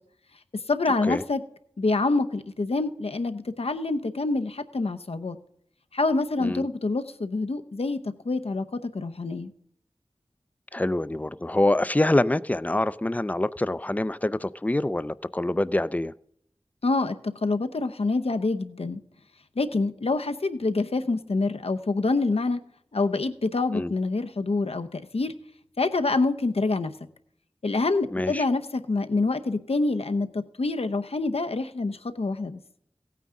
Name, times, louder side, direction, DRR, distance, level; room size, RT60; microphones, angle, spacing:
voice 1, 0.7-1.4 1.8-5.4 5.9-8.0 8.2-8.6 8.9-9.5 16.8-19.0 19.6-22.6 22.9-25.3 25.8-26.9 27.6-32.6, left 3 dB, 80° left, 0.7 m, -26 dB
voice 2, 10.7-16.1 23.7-23.9 28.1-28.4, left 1 dB, 15° left, 0.4 m, -25 dB
16.0 x 9.2 x 3.7 m
wide cardioid pair, 45°, 10 cm